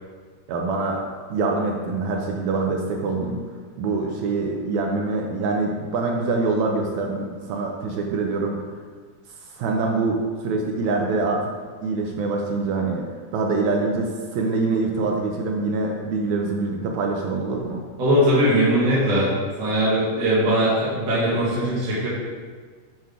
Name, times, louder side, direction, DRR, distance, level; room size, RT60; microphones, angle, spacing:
voice 1, 0.5-1.0 1.3-3.4 3.8-8.6 9.5-11.5 11.8-13.1 13.3-17.8, right 3 dB, 80° right, 1 dB, 1.7 m, -24 dB
voice 2, 18.0-19.3 19.6-22.1, equal, 50° right, -10 dB, 2.6 m, -20 dB
7.7 x 6.0 x 3.6 m, 1.5 s
omnidirectional pair, 4.0 m